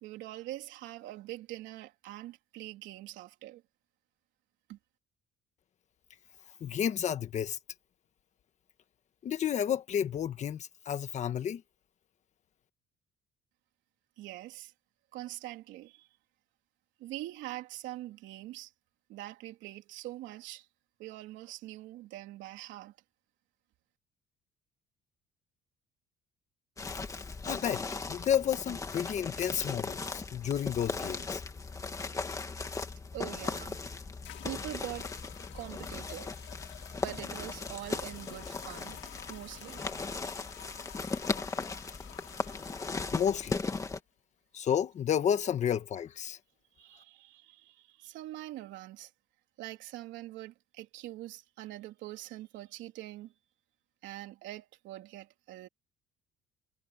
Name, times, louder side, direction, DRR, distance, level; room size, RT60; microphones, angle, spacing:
voice 1, 0.0-3.6 4.7-4.8 14.2-14.7 15.1-16.1 17.0-18.7 19.1-20.7 21.0-23.0 33.1-33.8 34.4-35.1 35.5-36.3 37.0-39.0 39.3-40.3 46.8-49.1 49.6-53.3 54.0-55.7, right 15 dB, 90° right, 3.4 m, -44 dB
voice 2, 6.6-7.6 9.2-11.6 27.4-31.4 43.1-43.6 44.5-46.4, left 9 dB, 40° left, 1.4 m, -31 dB
sound 1, 26.8-44.0, left 4 dB, 15° left, 2.1 m, -38 dB
sound 2, 34.2-43.0, left 14 dB, 85° left, 2.0 m, -51 dB
cardioid pair, 160°, 19 cm